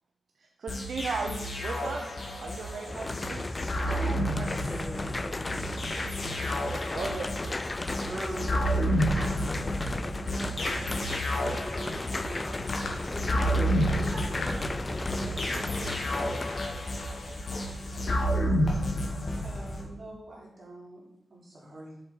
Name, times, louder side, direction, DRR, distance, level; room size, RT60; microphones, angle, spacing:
voice 1, 0.6-2.0 2.4-3.5 6.9-7.5, right 4 dB, 75° right, 2 dB, 0.9 m, -35 dB
sound 1, 0.7-19.9, equal, 45° left, 1.8 m, -31 dB
sound 2, 2.9-16.6, left 2 dB, 20° left, 0.3 m, -35 dB
voice 2, 3.9-5.7 8.0-8.9 9.1-11.2 11.5-12.6 13.1-16.4, right 1 dB, 30° right, -7 dB, 3.8 m, -43 dB
sound 3, 12.3-18.4, left 2 dB, 80° left, 1.3 m, -41 dB
voice 3, 19.4-21.0 21.3-21.9, right 1 dB, 45° right, -4 dB, 3.5 m, -46 dB
7.9 x 7.0 x 4.4 m, 0.83 s
wide cardioid pair, 160°, 0 cm